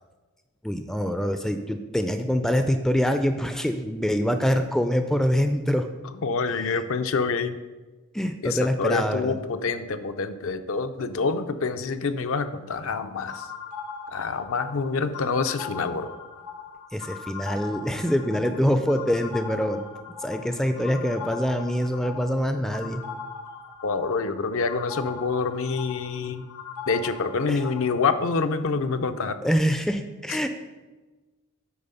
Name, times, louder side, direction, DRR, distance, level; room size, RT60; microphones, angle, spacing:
voice 1, 0.6-5.9 8.1-9.4 16.9-19.8 20.2-23.0 27.5-27.6 29.4-30.5, equal, ahead, 8 dB, 0.3 m, -25 dB
voice 2, 6.2-7.6 8.4-13.5 14.1-16.1 23.8-26.5 26.9-29.4 30.3-30.5, left 4 dB, 65° left, 9 dB, 0.5 m, -27 dB
sound 1, 13.3-28.0, left 5 dB, 85° left, 1.2 m, -40 dB
8.6 x 4.4 x 5.5 m, 1.2 s
head